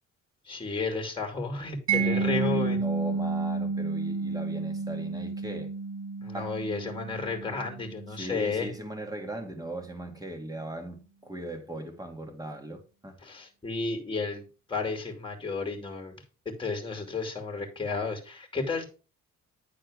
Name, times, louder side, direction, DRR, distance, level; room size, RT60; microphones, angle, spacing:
voice 1, 0.4-2.8 6.2-8.7 13.2-16.1 16.4-18.8, left 3 dB, 15° left, 2.8 m, -32 dB
voice 2, 1.9-5.7 6.2-6.5 8.1-13.2, right 1 dB, 10° right, 2.1 m, -38 dB
Mallet percussion, 1.9-8.7, right 4 dB, 45° right, 1.7 m, -31 dB
10.5 x 4.2 x 5.0 m
cardioid pair, 90°, 30 cm